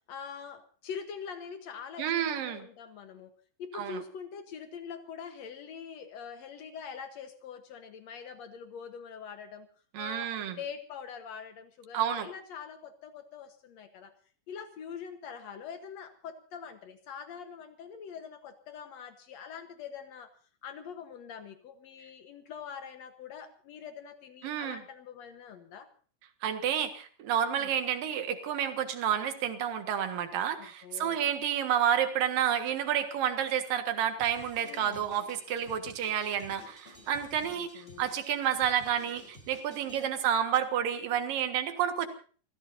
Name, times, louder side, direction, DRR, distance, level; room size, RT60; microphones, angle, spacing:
voice 1, 0.1-3.3 3.6-9.7 10.0-14.1 14.5-20.3 20.6-25.9 27.6-27.7 30.6-31.2 34.7-35.0 37.4-38.1 39.8-40.1, left 7 dB, 85° left, 8 dB, 1.5 m, -44 dB
voice 2, 2.0-2.7 3.7-4.0 9.9-10.6 11.9-12.3 24.4-24.8 26.4-42.1, right 9 dB, 60° right, 7 dB, 3.0 m, -30 dB
Drum kit, 34.2-40.1, left 1 dB, 15° left, 3.3 m, -53 dB
29.5 x 16.0 x 2.7 m, 0.41 s
omnidirectional pair, 4.8 m